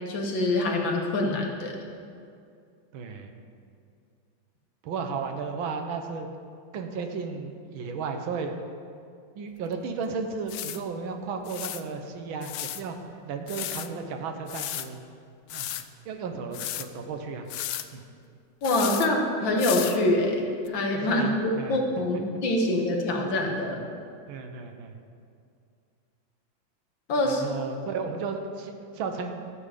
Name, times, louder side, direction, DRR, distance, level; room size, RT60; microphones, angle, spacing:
voice 1, 0.1-1.7 18.6-23.8 27.1-27.4, left 1 dB, 70° left, 1 dB, 2.1 m, -25 dB
voice 2, 2.9-3.3 4.8-6.3 6.7-8.5 9.4-13.0 13.3-15.0 15.5-15.7 16.1-17.5 17.9-18.0 21.1-21.8 22.1-22.2 24.3-25.0 27.2-29.3, right 5 dB, 85° right, 5 dB, 1.7 m, -34 dB
sound 1, 9.7-9.8 10.5-10.8 11.5-11.8 12.4-12.8 13.5-13.9 14.5-14.9 15.5-15.8 16.5-16.9 17.5-17.9 18.6-19.1 19.6-20.0 20.7-20.8, left 12 dB, 90° left, 0.8 m, -34 dB
13.0 x 7.8 x 5.0 m, 2.4 s
omnidirectional pair, 2.2 m